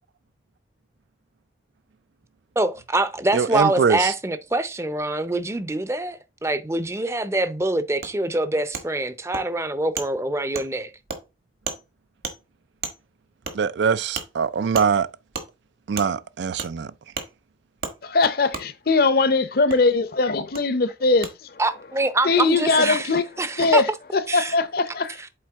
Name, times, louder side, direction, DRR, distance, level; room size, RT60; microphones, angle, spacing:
voice 1, 2.6-10.9 21.6-23.1 23.4-23.8 24.3-24.5, right 2 dB, 15° right, 0.5 m, -25 dB
voice 2, 3.3-4.1 13.5-15.1 15.9-16.9, right 6 dB, 75° right, 0.4 m, -22 dB
Wood, 8.0-8.1 8.7-8.8 9.3-9.4 10.0-10.1 10.5-10.7 11.1-11.2 11.7-11.8 12.2-12.4 12.8-13.0 13.5-13.6 14.1-14.3 14.7-14.9 15.3-15.5 16.0-16.1 16.6-16.7 17.1-17.3 17.8-17.9 18.5-18.6 19.7-19.8 20.5-20.6 21.2-21.3, right 5 dB, 55° right, 1.3 m, -31 dB
voice 3, 18.0-21.6 22.2-23.2 23.6-25.2, left 3 dB, 55° left, 0.7 m, -21 dB
7.6 x 4.3 x 3.5 m
head